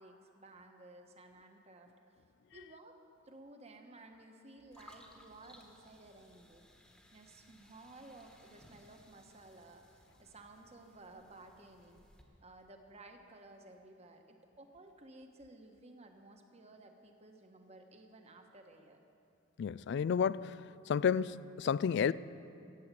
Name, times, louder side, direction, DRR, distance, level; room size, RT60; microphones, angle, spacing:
voice 1, 0.0-1.9 2.5-3.0 3.2-6.6 7.1-12.0 12.4-19.0, right 2 dB, 35° right, 4 dB, 1.2 m, -56 dB
sound 1, 4.7-12.2, left 1 dB, 5° left, 1.3 m, -62 dB
voice 2, 19.6-20.6 20.9-22.1, left 7 dB, 60° left, 19 dB, 0.3 m, -31 dB
15.0 x 8.6 x 8.3 m, 2.6 s
head